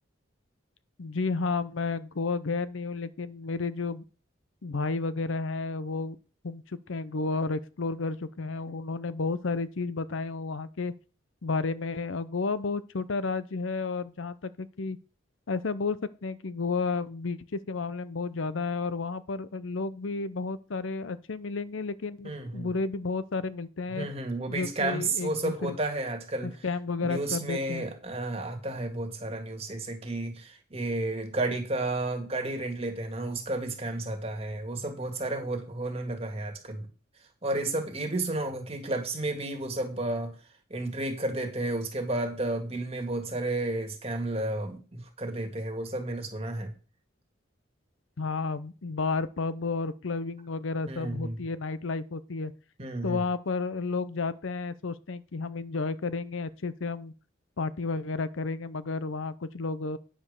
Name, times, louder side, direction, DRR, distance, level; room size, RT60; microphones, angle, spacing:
voice 1, 1.0-4.0 4.6-6.2 6.4-10.9 11.4-15.0 15.5-24.1 24.5-25.8 26.4-27.8 48.2-52.5 53.0-57.1 57.6-60.0, left 4 dB, 75° left, 0.7 m, -32 dB
voice 2, 22.2-22.7 23.9-26.5 27.0-36.9 37.4-40.4 40.7-46.7 50.9-51.4 52.8-53.2, right 2 dB, 30° right, 1.9 m, -32 dB
9.8 x 5.1 x 6.7 m
head